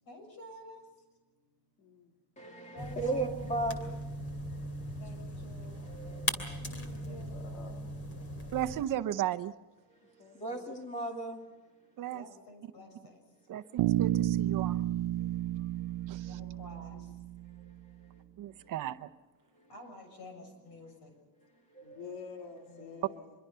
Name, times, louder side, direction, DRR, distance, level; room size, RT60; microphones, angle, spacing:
voice 1, 0.0-1.9 2.7-3.3 4.9-6.7 7.0-7.5 11.8-13.6 15.2-18.0 18.5-18.7 19.4-22.0 22.7-23.1, left 1 dB, 55° left, 6.9 m, -53 dB
voice 2, 1.8-2.1 6.6-8.0 8.3-8.5 10.2-10.7 16.9-17.1 21.8-23.3, left 5 dB, 75° left, 2.5 m, -49 dB
voice 3, 2.4-4.0 4.5-5.0 5.8-6.9 8.3-8.5 10.0-11.4 11.9-12.0 15.2-15.3 15.5-16.3 17.6-17.7 18.6-18.7 19.5-19.7 21.7-22.1 22.7-22.9, right 2 dB, 15° left, 2.7 m, -39 dB
sound 1, 2.8-8.8, equal, 30° left, 2.7 m, -39 dB
voice 4, 8.5-9.5 12.0-12.2 13.5-14.8 16.1-16.4 18.4-19.1, right 12 dB, 45° right, 0.8 m, -35 dB
Bass guitar, 13.8-17.8, right 14 dB, 75° right, 0.9 m, -31 dB
25.0 x 22.5 x 5.7 m
cardioid pair, 180°, 44 cm